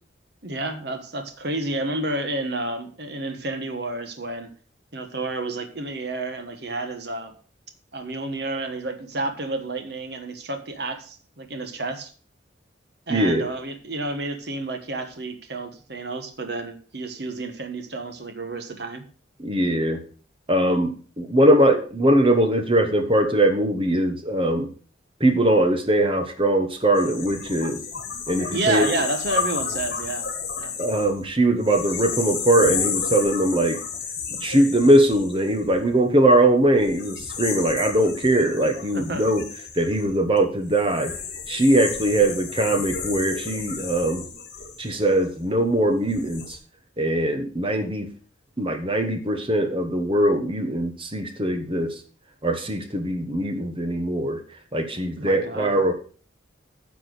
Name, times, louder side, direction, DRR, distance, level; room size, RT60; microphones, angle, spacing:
voice 1, 0.4-4.5 4.9-7.3 7.9-12.1 13.1-19.0 28.5-30.3 30.6-30.7 34.3-34.4 38.9-39.2 55.2-55.7, right 2 dB, 60° right, 7 dB, 1.4 m, -30 dB
voice 2, 13.1-13.5 19.4-20.0 20.5-24.7 25.2-27.8 28.3-28.9 30.8-33.8 34.4-39.5 39.7-41.1 41.5-44.3 44.8-46.6 47.0-48.1 48.6-51.9 52.4-54.4 54.7-55.9, right 1 dB, 30° right, 7 dB, 1.4 m, -21 dB
sound 1, 27.0-36.2 36.8-45.5 46.0-46.6, left 6 dB, 55° left, 2.8 m, -32 dB
10.0 x 6.1 x 6.3 m, 0.42 s
head